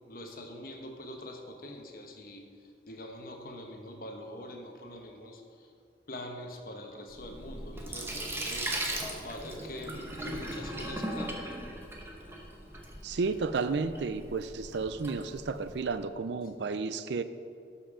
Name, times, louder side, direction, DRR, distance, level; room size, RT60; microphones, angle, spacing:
voice 1, 0.1-5.7 6.1-11.6, left 1 dB, 50° left, 3 dB, 1.1 m, -44 dB
Sink (filling or washing), 7.1-15.9, right 1 dB, 15° right, 0.9 m, -39 dB
voice 2, 13.0-17.2, right 4 dB, 75° right, 12 dB, 0.4 m, -32 dB
12.5 x 5.7 x 4.9 m, 2.3 s
head